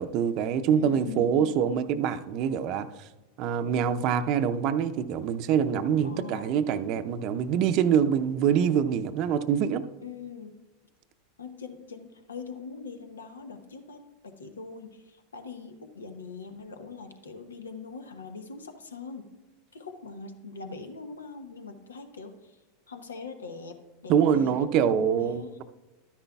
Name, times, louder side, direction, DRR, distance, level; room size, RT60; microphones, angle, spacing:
voice 1, 0.0-2.9 3.4-9.8 24.1-25.6, right 8 dB, 50° right, 0.6 m, -25 dB
voice 2, 0.7-1.8 6.0-6.6 10.0-10.5 11.4-19.2 19.7-22.6 22.9-25.6, left 4 dB, 85° left, 0.9 m, -42 dB
12.5 x 10.0 x 2.3 m
hypercardioid pair, 90°, 0 cm